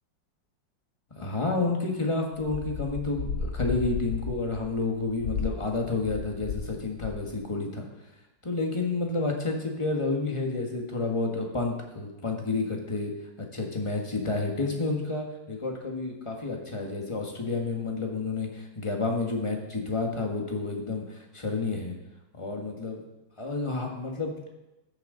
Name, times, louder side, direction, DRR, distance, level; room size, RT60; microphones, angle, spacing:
voice 1, 1.2-7.9 8.4-13.1 13.5-21.9 22.3-23.0 23.4-24.5, left 3 dB, 20° left, 1 dB, 1.3 m, -30 dB
sound 1, 2.4-6.7 7.0-7.4, left 5 dB, 70° left, 2.0 m, -34 dB
14.0 x 7.3 x 3.8 m, 0.98 s
omnidirectional pair, 2.0 m